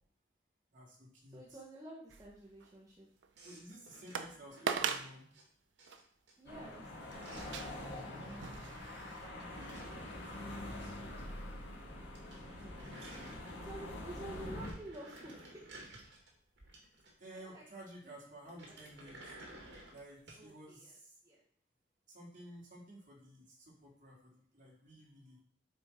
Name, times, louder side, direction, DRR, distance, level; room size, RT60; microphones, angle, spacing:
voice 1, 0.7-1.6 3.4-5.3 7.7-8.6 9.4-11.4 12.8-13.4 17.2-19.3 19.9-21.2 22.1-25.4, right 1 dB, 45° right, -4 dB, 2.4 m, -54 dB
voice 2, 1.3-3.1 6.4-6.9 12.6-12.8 13.1-15.7 17.3-17.6 18.0-18.2 18.7-18.8 20.4-21.0 21.2-21.4, right 1 dB, 20° right, -5 dB, 1.0 m, -50 dB
sound 1, 2.1-2.7 3.2-3.3 4.1-4.3 4.7-5.1 5.9-6.0 7.4-9.3 9.7-9.8, right 6 dB, 85° right, 0.5 m, -39 dB
sound 2, 3.4-5.5 5.8-6.3 6.6-7.8 9.1-11.2 11.5-11.6 11.9-12.0 12.1-13.9 14.3-17.4 18.5-20.5, right 1 dB, 70° right, 1.7 m, -55 dB
sound 3, 6.5-14.7, left 1 dB, 75° left, 1.7 m, -45 dB
8.5 x 3.7 x 4.2 m, 0.65 s
head